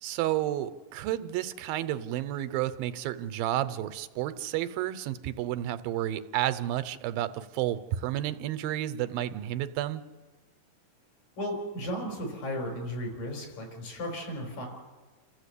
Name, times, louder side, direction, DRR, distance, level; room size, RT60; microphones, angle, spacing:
voice 1, 0.0-10.0, right 13 dB, 85° right, 12 dB, 2.6 m, -31 dB
voice 2, 11.4-14.7, equal, 70° left, 2 dB, 6.6 m, -35 dB
29.0 x 15.0 x 8.4 m, 1.3 s
omnidirectional pair, 4.1 m